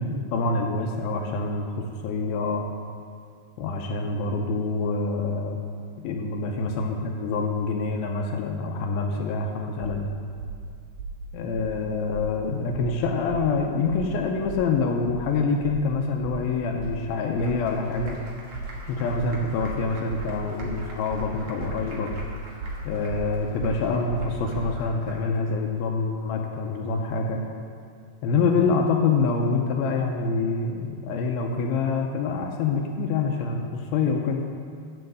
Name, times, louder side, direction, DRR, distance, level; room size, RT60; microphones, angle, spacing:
voice 1, 0.0-2.6 3.6-5.6 6.0-10.1 11.3-18.2 18.9-22.1 22.8-27.4 28.2-34.4, left 4 dB, 85° left, 2 dB, 2.5 m, -26 dB
sound 1, 9.8-10.1 10.4-10.6 11.0-11.2 11.6-11.8 12.1-12.4 12.7-13.0 13.3-13.6 13.9-14.1 14.5-14.7 15.1-15.3 15.6-15.9 16.2-16.5 16.8-17.1 17.4-17.6 18.0-18.2 18.5-18.8 19.1-19.3 19.6-19.8 20.1-20.3 20.6-20.8 21.1-21.3 21.6-21.8 22.1-22.3 22.6-22.8 23.1-23.3 23.6-23.8 24.1-24.8, right 3 dB, 85° right, 3.8 m, -35 dB
Applause, 16.8-25.5, right 1 dB, 55° right, 1.6 m, -46 dB
7.7 x 7.6 x 7.8 m, 2.2 s
omnidirectional pair, 4.3 m